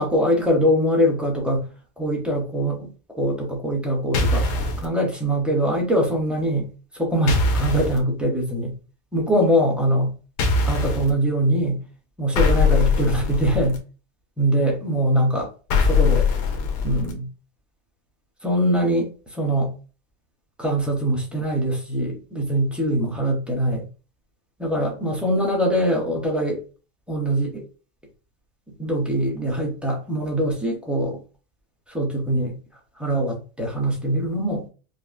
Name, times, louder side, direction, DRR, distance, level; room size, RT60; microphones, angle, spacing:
voice 1, 0.0-1.7 2.0-2.9 3.1-4.5 4.8-8.7 9.1-10.1 10.7-11.8 12.2-13.8 14.4-15.5 15.9-16.3 16.8-17.2 18.4-19.7 20.6-23.9 24.6-26.6 27.1-27.6 28.8-31.2 31.9-32.6 33.0-34.6, equal, ahead, -2 dB, 0.5 m, -22 dB
sound 1, 4.1-4.9 7.3-8.0 10.4-11.1 12.4-13.8 15.7-17.1, left 4 dB, 85° left, 1.3 m, -21 dB
5.1 x 2.0 x 2.5 m, 0.35 s
omnidirectional pair, 1.7 m